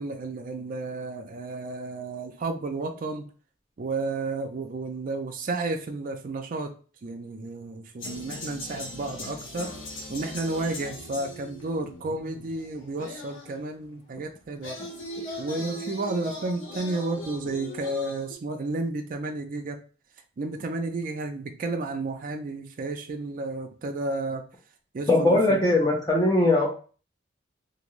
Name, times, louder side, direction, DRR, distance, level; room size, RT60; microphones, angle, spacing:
voice 1, 0.0-3.3 3.8-6.7 7.0-9.7 10.1-14.8 15.4-19.8 20.4-24.4 24.9-25.6, right 2 dB, 45° right, 4 dB, 0.4 m, -32 dB
sound 1, 8.0-13.7 14.4-18.4, left 1 dB, 90° left, 0.9 m, -39 dB
voice 2, 25.1-26.7, left 2 dB, 20° left, -3 dB, 0.6 m, -20 dB
2.6 x 2.5 x 3.0 m, 0.38 s
head